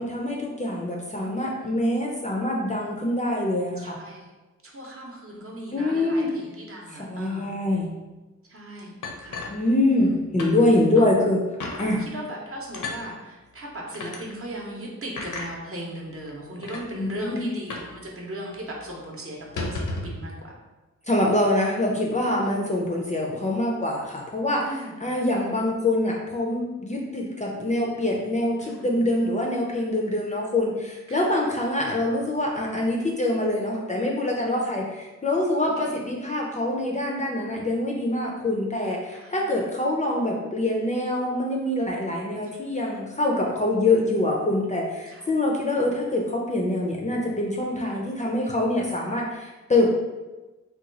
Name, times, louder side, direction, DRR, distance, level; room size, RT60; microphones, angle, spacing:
voice 1, 0.0-4.0 5.7-6.3 6.9-7.9 9.5-11.4 11.8-12.0 17.0-17.5 21.1-49.9, left 1 dB, 25° left, -2 dB, 0.4 m, -25 dB
voice 2, 1.1-1.9 3.8-4.3 4.6-7.6 8.5-8.9 9.2-9.4 9.9-10.1 11.0-11.3 11.8-20.5 22.4-22.6 24.7-24.9 28.6-28.8 31.1-31.2 33.7-33.9 35.8-35.9 39.1-39.4 42.4-42.7 45.1-45.2 48.8-49.1, right 1 dB, 45° right, -2 dB, 0.7 m, -38 dB
sound 1, 9.0-10.1 10.4-10.6 11.0-11.1 11.6-11.9 12.7-13.0 13.9-14.2 15.2-15.5 16.3-16.4 16.6-16.8 17.7-18.0 18.2-18.3 18.7-18.8 19.4-20.2, left 2 dB, 80° left, 0.6 m, -33 dB
2.9 x 2.3 x 3.7 m, 1.1 s
wide cardioid pair, 135°, 30 cm